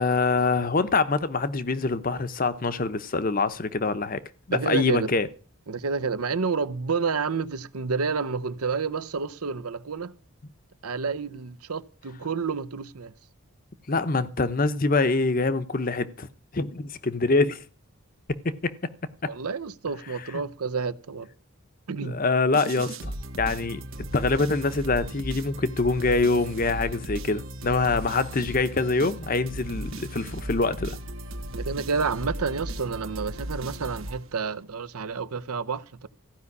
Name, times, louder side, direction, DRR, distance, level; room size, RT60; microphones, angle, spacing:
voice 1, 0.0-4.2 4.5-5.3 13.9-16.3 16.5-17.6 18.3-18.7 21.9-23.8 24.1-31.0, left 3 dB, 40° left, 0.8 m, -25 dB
voice 2, 4.5-5.1 5.7-10.2 10.8-13.1 19.3-21.3 21.9-22.2 31.5-36.1, right 5 dB, 85° right, 0.8 m, -29 dB
sound 1, 22.5-34.6, right 1 dB, 65° right, 1.4 m, -36 dB
15.0 x 5.6 x 9.6 m
head